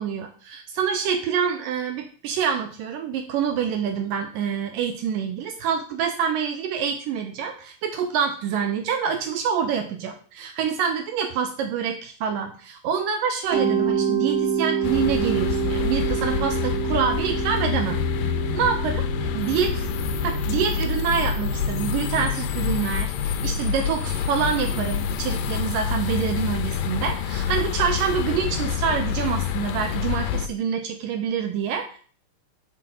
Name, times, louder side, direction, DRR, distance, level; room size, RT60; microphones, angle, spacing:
voice 1, 0.0-18.0 18.5-19.0 19.4-19.7 20.2-32.0, right 7 dB, 80° right, 4 dB, 2.4 m, -26 dB
Mallet percussion, 13.5-22.3, right 7 dB, 40° right, 2.2 m, -28 dB
sound 1, 14.8-30.5, left 8 dB, 85° left, 2.4 m, -27 dB
5.9 x 5.9 x 6.2 m, 0.43 s
omnidirectional pair, 4.0 m